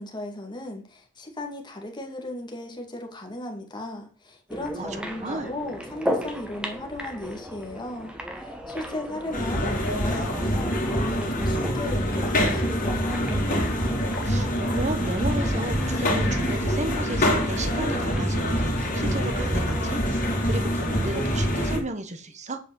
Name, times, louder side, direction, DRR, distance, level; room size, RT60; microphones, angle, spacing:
voice 1, 0.0-13.4, left 1 dB, 20° left, 2 dB, 2.2 m, -36 dB
sound 1, 4.5-18.5, equal, 5° right, 1.5 m, -37 dB
voice 2, 4.8-5.5 14.2-22.6, right 1 dB, 35° right, 9 dB, 1.3 m, -33 dB
sound 2, 9.3-21.8, equal, 40° left, 3.3 m, -25 dB
8.2 x 5.4 x 7.6 m, 0.40 s
head